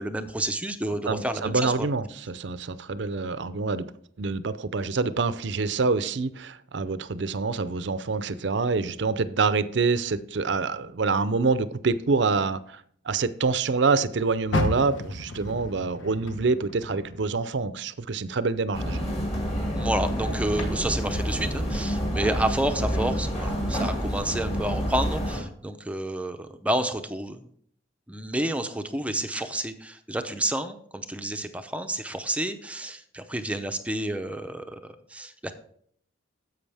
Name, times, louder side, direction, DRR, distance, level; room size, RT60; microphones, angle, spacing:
voice 1, 0.0-1.9 19.7-27.4 28.1-35.5, right 1 dB, 5° right, 7 dB, 0.6 m, -30 dB
voice 2, 1.1-3.9 4.2-19.1, right 4 dB, 60° right, 14 dB, 0.6 m, -26 dB
Car, 14.5-17.8 18.2-19.5 20.0-20.1 20.7-20.8, left 2 dB, 75° left, 1.1 m, -32 dB
sound 1, 18.7-25.4, equal, 30° left, 2.3 m, -28 dB
11.0 x 7.8 x 3.4 m, 0.62 s
head